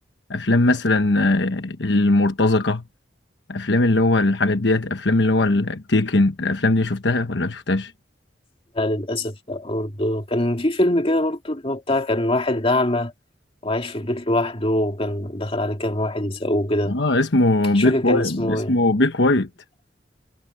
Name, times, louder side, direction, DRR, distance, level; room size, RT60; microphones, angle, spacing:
voice 1, 0.3-2.8 3.5-7.9 16.9-19.5, left 2 dB, 70° left, 1.2 m, -20 dB
voice 2, 8.7-13.1 13.6-17.0 17.7-18.7, left 1 dB, 30° left, 2.2 m, -23 dB
head